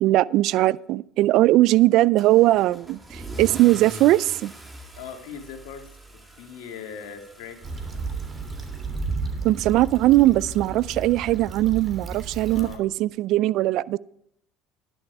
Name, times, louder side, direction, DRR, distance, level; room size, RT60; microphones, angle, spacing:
voice 1, 0.0-4.5 9.4-14.0, right 16 dB, 65° right, 21 dB, 0.3 m, -20 dB
Car / Engine starting / Accelerating revving vroom, 2.2-9.5, right 1 dB, 15° right, 2.9 m, -42 dB
voice 2, 5.0-7.6 12.6-12.9, left 7 dB, 75° left, 4 dB, 2.1 m, -40 dB
Stream / Traffic noise roadway noise / Trickle dribble, 7.6-12.8, right 4 dB, 35° right, 3.0 m, -33 dB
11.0 x 11.0 x 4.8 m, 0.74 s
hypercardioid pair, 75°, 0 cm